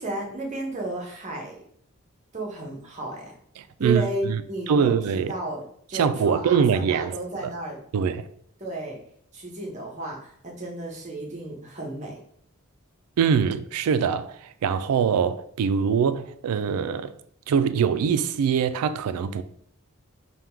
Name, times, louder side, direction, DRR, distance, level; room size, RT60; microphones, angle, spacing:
voice 1, 0.0-1.6 2.3-3.3 3.8-5.6 5.9-7.8 8.6-9.0 9.3-12.2, right 2 dB, 30° right, 0.8 m, -33 dB
voice 2, 3.6-4.4 4.7-5.3 5.9-7.2 7.4-7.5 7.9-8.3 13.2-17.1 17.5-19.4, right 7 dB, 85° right, 0.3 m, -23 dB
3.6 x 2.3 x 4.4 m
head